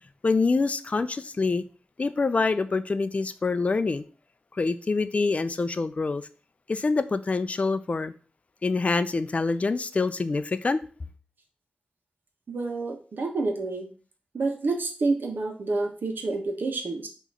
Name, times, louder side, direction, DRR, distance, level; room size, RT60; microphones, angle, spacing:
voice 1, 0.2-1.6 2.0-4.0 4.6-6.2 6.7-8.1 8.6-10.8, left 3 dB, 45° left, 0.5 m, -25 dB
voice 2, 12.5-13.9 14.3-17.1, right 3 dB, 85° right, 1.3 m, -28 dB
6.1 x 3.0 x 5.6 m
wide cardioid pair, 110°, 3 cm